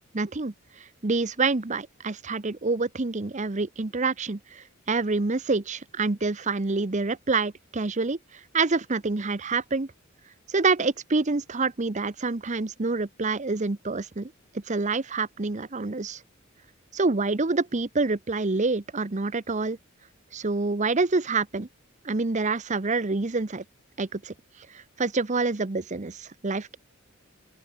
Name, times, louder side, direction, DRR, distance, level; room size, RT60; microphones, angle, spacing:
voice 1, 0.1-0.5 1.0-8.2 8.5-9.9 10.5-16.2 16.9-19.8 20.3-21.7 22.0-23.6 24.0-24.3 24.7-26.8, right 3 dB, 35° right, 0.8 m, -27 dB
open air
head